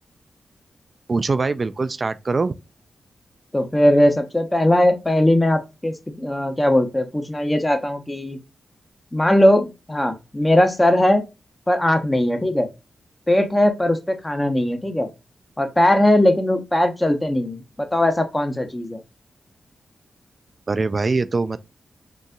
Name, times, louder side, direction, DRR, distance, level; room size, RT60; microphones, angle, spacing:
voice 1, 1.1-2.5 20.7-21.6, right 3 dB, 50° right, 0.3 m, -22 dB
voice 2, 3.5-8.4 9.1-11.2 11.7-12.7 13.3-15.1 15.6-19.0, left 1 dB, 20° left, 0.8 m, -19 dB
4.0 x 2.6 x 2.2 m
cardioid pair, 45°, 0 cm